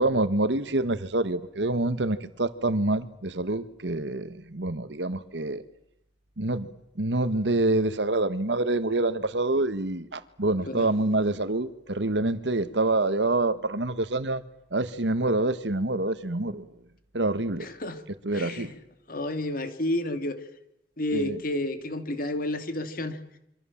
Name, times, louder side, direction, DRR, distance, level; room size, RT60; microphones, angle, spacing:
voice 1, 0.0-5.6 6.4-6.7 6.9-14.4 14.7-16.7 17.1-17.7 18.2-18.7 21.1-21.4, right 2 dB, 80° right, 1.6 m, -26 dB
voice 2, 17.6-18.0 18.3-18.7 19.1-20.4 21.0-23.2, left 1 dB, 55° left, 2.7 m, -30 dB
27.5 x 25.0 x 7.4 m
head